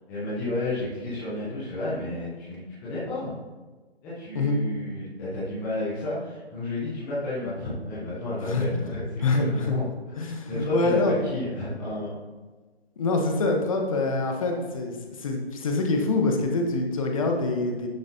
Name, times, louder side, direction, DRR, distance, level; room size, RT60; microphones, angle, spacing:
voice 1, 0.1-3.3 4.0-9.9 10.1-12.1, left 1 dB, 5° left, -10 dB, 0.7 m, -31 dB
voice 2, 9.2-9.7 10.2-11.1 13.0-17.9, left 3 dB, 30° left, 2 dB, 1.0 m, -25 dB
10.0 x 6.6 x 2.8 m, 1.3 s
figure-of-eight pair, 155°, 32 cm